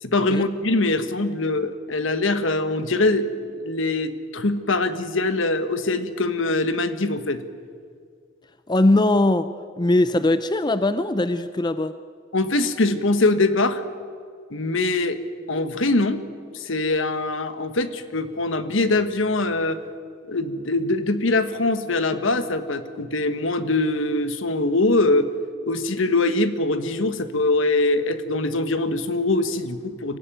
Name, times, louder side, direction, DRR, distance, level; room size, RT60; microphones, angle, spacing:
voice 1, 0.0-7.4 12.3-13.8 14.5-15.2 15.5-16.2 16.5-19.8 20.3-25.3 25.6-30.2, left 2 dB, 70° left, 10 dB, 1.3 m, -23 dB
voice 2, 8.7-9.5 9.8-11.9, left 2 dB, 20° left, 12 dB, 0.5 m, -20 dB
24.0 x 15.5 x 9.0 m, 2.2 s
head